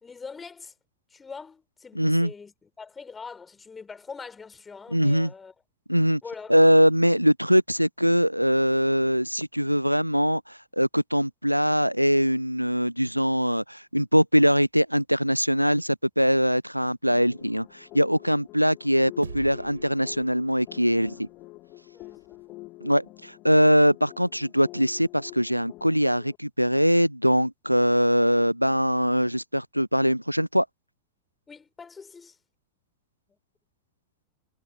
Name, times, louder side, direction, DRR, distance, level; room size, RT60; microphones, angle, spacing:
voice 1, 0.0-0.7 1.1-5.5 6.2-6.5 21.9-22.6 31.5-32.4 33.3-33.4, left 5 dB, 15° left, 3.4 m, -43 dB
voice 2, 1.9-2.3 4.9-5.3 5.9-6.2 6.5-21.3 22.8-30.7, equal, 90° right, 0.4 m, -22 dB
sound 1, 17.1-26.4, left 20 dB, 40° left, 2.2 m, -47 dB
sound 2, 19.2-21.8, right 5 dB, 75° right, 3.7 m, -43 dB
figure-of-eight pair, 90°, 0 cm